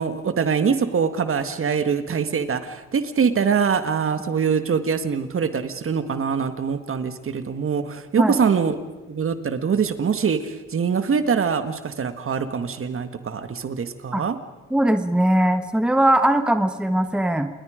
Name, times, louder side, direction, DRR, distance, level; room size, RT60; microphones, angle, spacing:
voice 1, 0.0-8.8 9.1-14.4, right 6 dB, 45° right, 10 dB, 1.7 m, -23 dB
voice 2, 14.7-17.5, right 1 dB, 5° right, 8 dB, 1.3 m, -20 dB
28.5 x 21.5 x 5.1 m, 1.2 s
cardioid pair, 90°, 30 cm